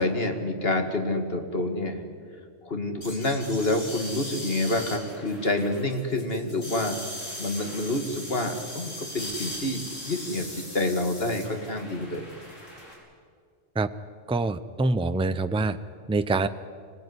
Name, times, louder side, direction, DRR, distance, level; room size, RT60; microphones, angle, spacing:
voice 1, 0.0-2.0 2.6-7.0 7.4-12.3, left 2 dB, 50° left, 4 dB, 2.5 m, -28 dB
sound 1, 3.0-12.9, left 1 dB, 75° left, 6.3 m, -39 dB
voice 2, 14.3-15.8 16.1-16.5, right 3 dB, 5° right, 11 dB, 0.5 m, -25 dB
25.5 x 19.0 x 9.8 m, 2.1 s
omnidirectional pair, 1.3 m